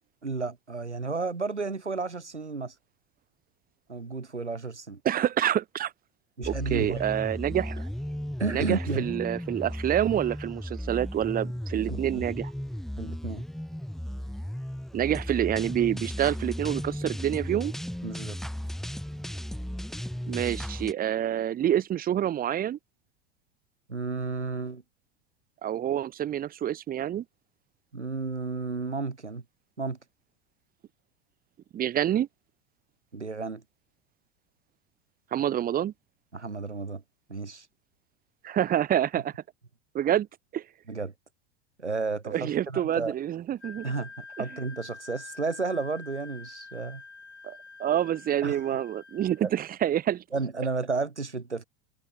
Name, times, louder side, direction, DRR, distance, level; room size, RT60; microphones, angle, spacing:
voice 1, 0.2-2.7 3.9-5.0 6.4-7.0 8.4-9.1 11.9-12.0 13.0-13.4 18.0-18.4 23.9-24.8 27.9-29.4 29.8-30.0 33.1-33.6 36.3-37.0 37.3-37.7 40.9-41.1 41.8-43.1 43.8-47.0 48.4-48.6 49.4-49.5 50.3-51.7, right 4 dB, 90° right, 0.8 m, -32 dB
voice 2, 5.0-5.9 6.5-7.9 8.5-12.5 14.9-17.7 20.3-22.8 25.6-27.2 31.7-32.3 35.3-35.9 38.4-39.3 39.9-40.3 40.5-40.6 42.3-43.8 47.4-50.2, right 11 dB, 25° right, 1.4 m, -27 dB
sound 1, 6.4-20.9, equal, ahead, 2.0 m, -35 dB
Wind instrument woodwind instrument, 43.6-49.4, left 4 dB, 80° left, 2.4 m, -46 dB
figure-of-eight pair, 85°, 34 cm